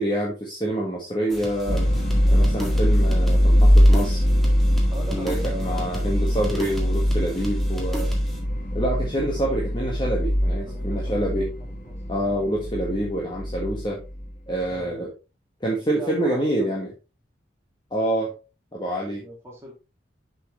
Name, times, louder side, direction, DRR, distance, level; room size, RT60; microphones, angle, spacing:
voice 1, 0.0-1.9 2.3-4.2 5.1-8.1 8.7-11.5 12.1-14.0 14.5-15.1 15.6-16.9 17.9-18.3 18.7-19.2, right 1 dB, 25° left, -3 dB, 1.5 m, -26 dB
sound 1, 1.3-8.4, equal, ahead, 1.7 m, -37 dB
sound 2, 1.7-14.6, equal, 40° left, 1.7 m, -22 dB
voice 2, 4.9-6.1 10.4-11.5 11.8-12.0 14.7-15.0 15.9-16.8 19.1-19.7, right 1 dB, 15° right, -2 dB, 2.6 m, -40 dB
6.8 x 6.2 x 3.1 m, 0.29 s
head